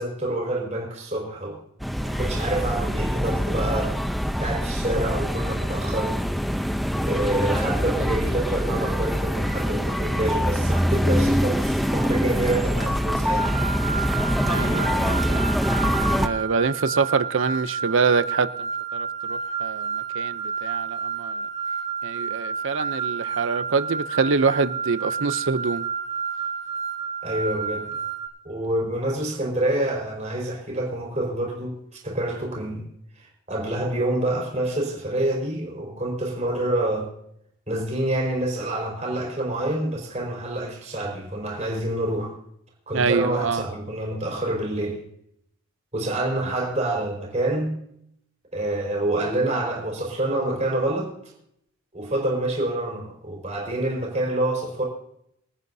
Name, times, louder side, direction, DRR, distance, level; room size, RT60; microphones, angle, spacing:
voice 1, 0.0-1.6 2.0-4.0 4.4-6.2 7.0-13.6 27.2-27.9 28.4-32.9 33.2-37.1 37.7-42.3 42.9-45.0 45.9-47.8 48.5-51.1 51.9-54.8, right 1 dB, 35° right, 4.9 m, -27 dB
sound 1, 1.8-16.3, equal, ahead, 0.6 m, -24 dB
sound 2, 13.4-28.3, right 6 dB, 50° left, 5.0 m, -30 dB
voice 2, 14.4-15.4 16.2-21.4 22.0-25.9 42.9-43.7, right 4 dB, 70° right, 0.6 m, -25 dB
27.5 x 9.5 x 2.7 m
head